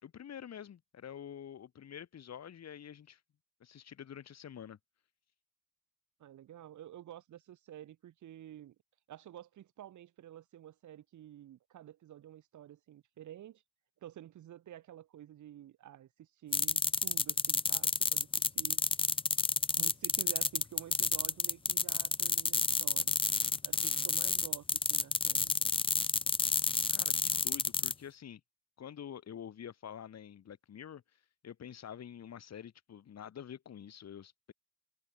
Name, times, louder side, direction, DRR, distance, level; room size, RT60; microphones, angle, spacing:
voice 1, 0.0-3.2 3.6-4.8 26.9-28.4 28.8-31.0 31.4-34.5, left 9 dB, 60° left, 6.3 m, -47 dB
voice 2, 6.2-8.8 9.1-13.6 14.0-18.8 19.7-23.1 23.6-25.5, right 12 dB, 75° right, 6.1 m, -51 dB
sound 1, 16.5-27.9, left 4 dB, 20° left, 0.6 m, -30 dB
cardioid pair, 90°, 30 cm